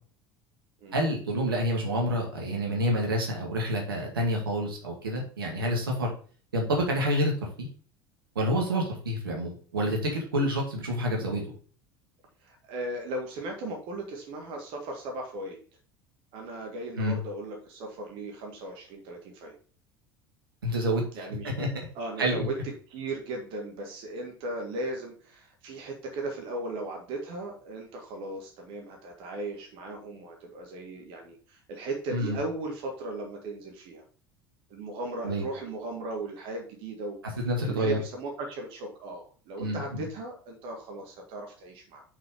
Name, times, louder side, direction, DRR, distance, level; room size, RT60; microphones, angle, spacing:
voice 1, 0.9-6.1 6.5-7.3 7.6-7.7 8.4-11.4 17.0-17.2 20.6-21.0 21.6-21.7 22.2-22.4 32.1-32.4 35.2-35.4 37.5-38.0 39.6-40.0, equal, 75° right, 0 dB, 2.2 m, -28 dB
voice 2, 12.4-15.6 16.3-19.5 21.1-21.7 21.9-22.5 22.9-34.0 34.7-42.0, right 2 dB, 50° right, 2 dB, 1.9 m, -37 dB
6.1 x 5.8 x 5.1 m, 0.41 s
figure-of-eight pair, 70°, 12 cm